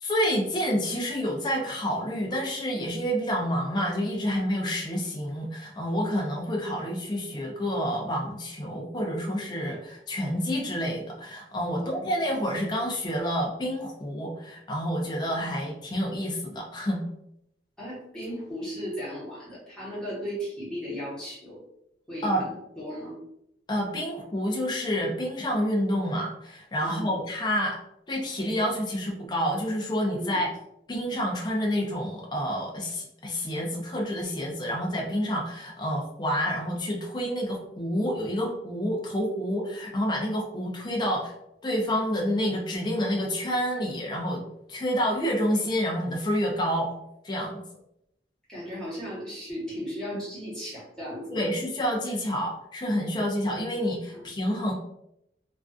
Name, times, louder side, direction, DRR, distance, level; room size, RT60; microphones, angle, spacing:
voice 1, 0.0-17.0 22.2-22.4 23.7-27.8 28.1-30.5 30.9-41.3 41.6-44.4 44.7-46.9 47.2-47.6 51.3-54.7, equal, 25° left, -2 dB, 0.4 m, -28 dB
voice 2, 11.7-12.2 15.4-15.6 17.8-21.6 22.1-23.2 26.8-27.1 30.1-30.4 48.5-51.6 54.1-54.3, equal, 5° left, -8 dB, 0.9 m, -36 dB
2.4 x 2.3 x 2.3 m, 0.79 s
head